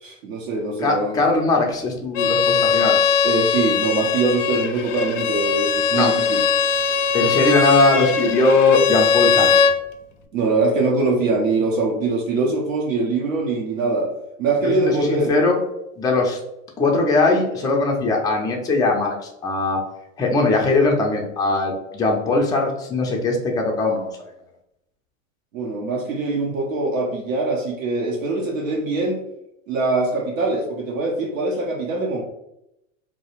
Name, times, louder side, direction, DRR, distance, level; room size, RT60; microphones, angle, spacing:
voice 1, 0.0-1.2 3.2-6.4 10.3-14.1 14.4-15.3 25.5-29.2 29.7-32.2, right 3 dB, 80° right, -2 dB, 0.7 m, -23 dB
voice 2, 0.8-3.0 5.9-6.1 7.1-9.5 14.6-15.6 16.0-16.4 16.8-19.8 20.2-24.1, left 3 dB, 10° left, 0 dB, 0.4 m, -20 dB
Bowed string instrument, 2.1-9.8, left 6 dB, 65° left, 0.5 m, -20 dB
2.2 x 2.0 x 2.9 m, 0.83 s
hypercardioid pair, 90°, 39 cm